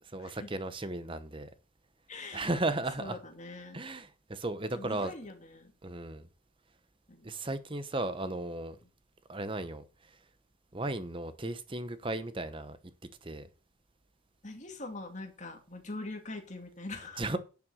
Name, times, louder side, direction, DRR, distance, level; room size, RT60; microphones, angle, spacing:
voice 1, 0.0-1.5 2.3-3.2 3.7-5.1 5.8-6.3 7.2-8.8 9.3-10.2 10.7-12.8 13.2-13.5 17.2-17.4, right 2 dB, 25° right, 0.9 m, -35 dB
voice 2, 2.1-2.5 3.0-3.8 4.7-5.7 7.1-7.3 14.4-17.2, left 2 dB, 35° left, 2.5 m, -43 dB
11.0 x 7.0 x 6.3 m
head